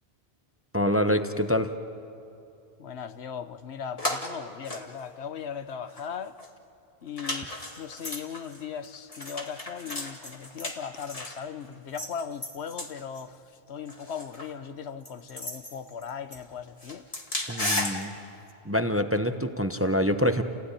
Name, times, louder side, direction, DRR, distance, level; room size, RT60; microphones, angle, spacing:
voice 1, 0.7-1.7 17.5-18.1 18.6-20.4, equal, 15° right, 0.7 m, -25 dB
voice 2, 2.8-6.4 7.0-13.4 13.7-17.1, left 7 dB, 80° left, 1.2 m, -38 dB
sound 1, 4.0-4.3 4.6-5.6 5.9-6.0 6.4-6.5 7.2-11.4 11.9-13.2 13.9-14.5 15.1-16.5 16.8-18.0 18.5-18.6, left 1 dB, 35° left, 2.0 m, -35 dB
30.0 x 16.0 x 9.9 m
omnidirectional pair, 1.1 m